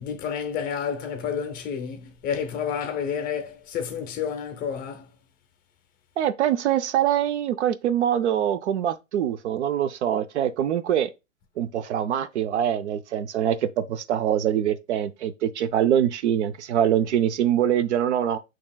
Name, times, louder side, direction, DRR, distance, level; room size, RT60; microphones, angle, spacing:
voice 1, 0.0-5.1, left 7 dB, 20° left, 0.7 m, -30 dB
voice 2, 6.2-11.1 11.6-18.4, right 10 dB, 60° right, 0.6 m, -24 dB
7.0 x 3.0 x 2.3 m
hypercardioid pair, 120°, 39 cm